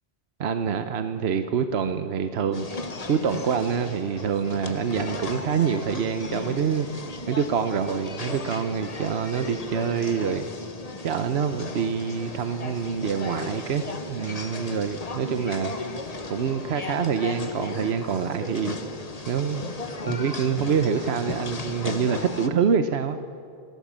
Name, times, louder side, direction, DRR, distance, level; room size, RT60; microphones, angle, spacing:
voice 1, 0.4-2.7 3.1-6.9 7.3-10.5 11.0-15.7 16.3-18.8 19.3-19.7 20.1-23.2, right 7 dB, 80° right, 9 dB, 1.1 m, -26 dB
sound 1, 2.5-22.5, left 3 dB, 40° left, 1.3 m, -35 dB
29.0 x 13.5 x 7.5 m, 2.6 s
omnidirectional pair, 1.1 m